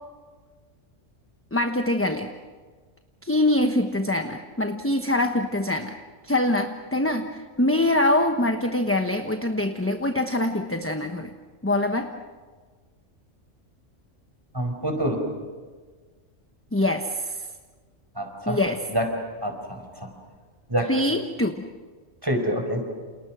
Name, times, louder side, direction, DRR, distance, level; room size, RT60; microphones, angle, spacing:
voice 1, 1.5-2.3 3.2-6.0 6.2-7.3 7.6-11.3 11.6-12.1 16.7-17.4 18.5-18.8 20.9-21.5, left 1 dB, 10° left, 5 dB, 1.1 m, -24 dB
voice 2, 14.5-15.2 18.1-18.6 18.9-19.1 19.4-20.1 20.7-20.9 22.2-22.8, right 1 dB, 15° right, 4 dB, 5.0 m, -26 dB
29.5 x 28.5 x 6.2 m, 1.4 s
omnidirectional pair, 1.3 m